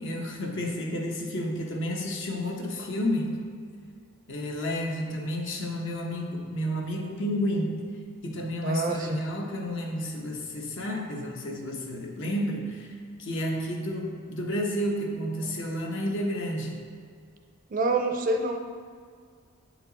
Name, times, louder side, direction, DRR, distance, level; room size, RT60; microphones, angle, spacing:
voice 1, 0.0-3.4 4.3-7.8 8.2-16.7, equal, 55° left, 1 dB, 0.9 m, -31 dB
voice 2, 8.6-9.2 17.7-18.6, right 2 dB, 35° right, 4 dB, 0.4 m, -26 dB
8.4 x 4.4 x 4.0 m, 2.1 s
head